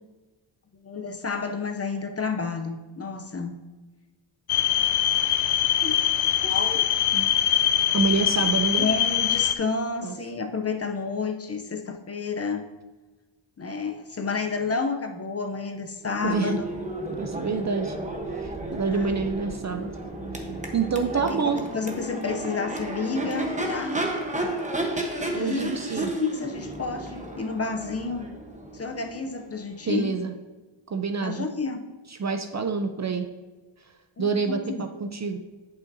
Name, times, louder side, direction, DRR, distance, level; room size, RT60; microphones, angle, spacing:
voice 1, 0.8-3.6 5.8-6.0 6.4-6.9 8.4-12.6 13.6-16.7 18.9-19.2 21.3-24.0 25.3-25.7 26.2-28.3 28.7-30.1 31.2-31.8 34.2-34.8, left 4 dB, 30° left, 6 dB, 0.6 m, -30 dB
sound 1, 4.5-9.5, left 11 dB, 85° left, 0.6 m, -23 dB
voice 2, 7.9-8.9 10.0-10.1 16.2-16.6 17.2-18.0 18.4-19.9 20.7-21.6 25.3-26.1 29.9-30.3 30.9-31.5 32.1-33.3 34.2-35.4, right 4 dB, 35° right, 6 dB, 0.5 m, -27 dB
Crowd / Race car auto racing / Accelerating revving vroom, 16.0-29.9, right 1 dB, 15° right, 1.0 m, -33 dB
10.5 x 5.7 x 2.7 m, 1.2 s
wide cardioid pair, 110°, 49 cm